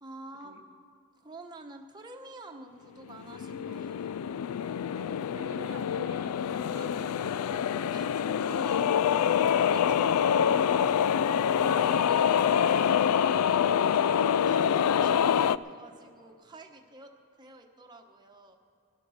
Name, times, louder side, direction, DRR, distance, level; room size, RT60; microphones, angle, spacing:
voice 1, 0.0-0.5 1.1-4.1 6.7-6.9 7.9-9.0 9.2-17.1 17.4-18.6, right 2 dB, 20° right, 1 dB, 1.0 m, -49 dB
sound 1, 3.1-15.6, left 8 dB, 85° left, 0.3 m, -26 dB
voice 2, 4.9-7.8, right 2 dB, 55° right, 4 dB, 0.8 m, -48 dB
16.5 x 11.0 x 6.4 m, 2.5 s
head